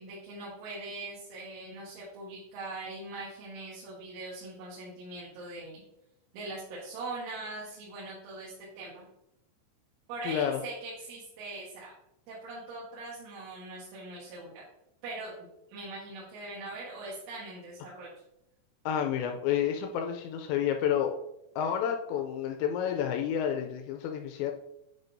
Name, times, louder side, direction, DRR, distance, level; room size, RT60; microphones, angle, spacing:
voice 1, 0.0-5.8 6.3-9.0 10.1-11.9 12.3-14.7 15.0-15.3 15.7-18.1, right 2 dB, 75° right, -7 dB, 3.8 m, -41 dB
voice 2, 10.2-10.6 18.9-21.2 21.6-24.5, left 9 dB, 85° left, 4 dB, 2.6 m, -30 dB
8.9 x 5.5 x 2.6 m, 0.82 s
omnidirectional pair, 5.6 m